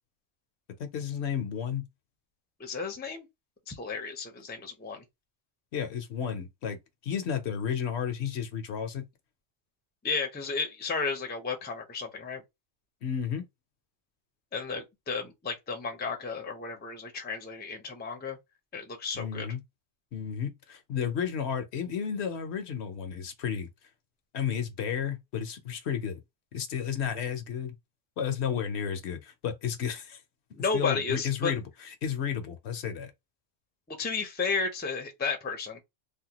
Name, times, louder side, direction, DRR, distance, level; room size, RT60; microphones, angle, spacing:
voice 1, 0.8-1.9 5.7-6.8 7.0-9.1 13.0-13.4 19.1-19.6 20.1-23.7 24.3-26.2 26.5-27.8 28.2-30.2 30.7-33.1, left 8 dB, 65° left, 0.9 m, -32 dB
voice 2, 2.6-3.3 3.7-5.0 10.0-12.4 14.5-18.4 18.7-19.5 30.5-31.5 33.9-35.8, left 4 dB, 10° left, 0.5 m, -33 dB
3.4 x 2.2 x 2.8 m
omnidirectional pair, 1.2 m